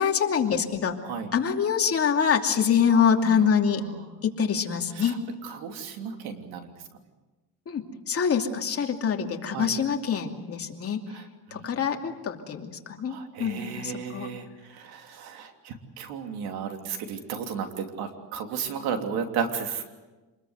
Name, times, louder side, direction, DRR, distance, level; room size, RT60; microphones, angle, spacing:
voice 1, 0.0-1.0 1.3-3.8 4.2-5.1 7.7-11.0 11.5-14.3, left 7 dB, 40° left, 3 dB, 2.7 m, -25 dB
voice 2, 2.9-3.5 3.8-4.1 4.9-6.7 9.5-9.7 11.1-11.7 13.1-19.8, right 6 dB, 85° right, 5 dB, 3.2 m, -34 dB
27.5 x 21.0 x 8.1 m, 1.2 s
cardioid pair, 120°, 37 cm